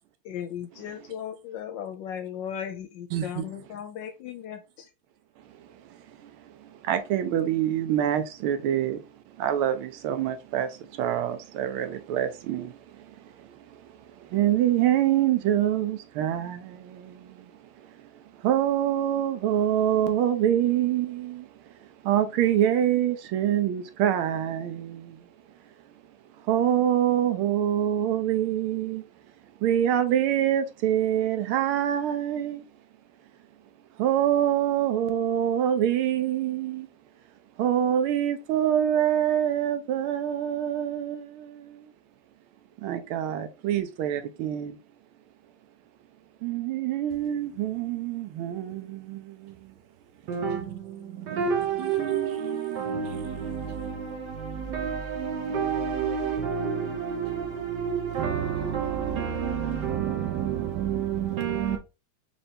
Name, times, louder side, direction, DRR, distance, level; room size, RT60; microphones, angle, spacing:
voice 1, 0.2-4.9, left 9 dB, 70° left, 1.2 m, -37 dB
voice 2, 3.1-3.4 6.2-6.3 6.6-9.0 9.4-13.8 14.2-17.5 17.8-18.1 18.4-21.5 22.0-25.2 26.5-29.0 29.6-32.7 34.0-36.9 37.6-41.9 42.8-44.8 46.4-49.7 51.8-53.2 53.5-53.6, right 10 dB, 80° right, 1.5 m, -26 dB
voice 3, 50.2-61.8, right 7 dB, 65° right, 1.2 m, -29 dB
4.4 x 3.2 x 2.8 m
omnidirectional pair, 2.3 m